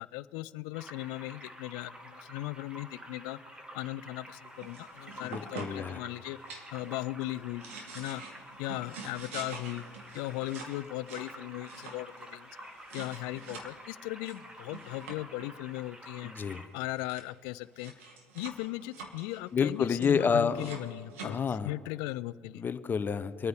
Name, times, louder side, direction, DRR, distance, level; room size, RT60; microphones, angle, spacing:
voice 1, 0.0-3.4 3.7-6.4 6.7-7.6 7.9-8.2 8.6-9.8 10.1-12.5 12.9-16.3 16.7-17.9 18.3-22.6, left 18 dB, 65° left, 18 dB, 0.5 m, -38 dB
sound 1, 0.7-16.7, equal, 15° right, 1.7 m, -49 dB
sound 2, 4.5-5.9 6.4-7.0 7.4-13.7 14.2-15.5 16.5-16.6 16.8-17.2 17.6-21.3, right 4 dB, 85° right, 2.2 m, -47 dB
voice 2, 5.2-6.0 16.2-16.7 19.5-20.7 21.2-21.7 22.6-23.5, left 6 dB, 30° left, 13 dB, 0.8 m, -29 dB
25.0 x 9.4 x 3.6 m, 2.2 s
hypercardioid pair, 85°, 7 cm